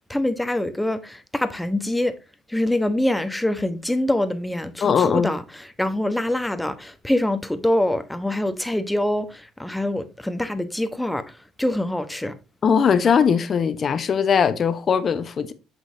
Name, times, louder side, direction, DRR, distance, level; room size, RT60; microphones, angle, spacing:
voice 1, 0.1-2.2 2.5-5.4 5.8-11.2 11.6-12.3, left 1 dB, 5° left, 1.2 m, -24 dB
voice 2, 4.8-5.3 12.6-15.5, left 6 dB, 45° left, 1.0 m, -20 dB
8.0 x 6.4 x 2.8 m
supercardioid pair, 70°, 0 cm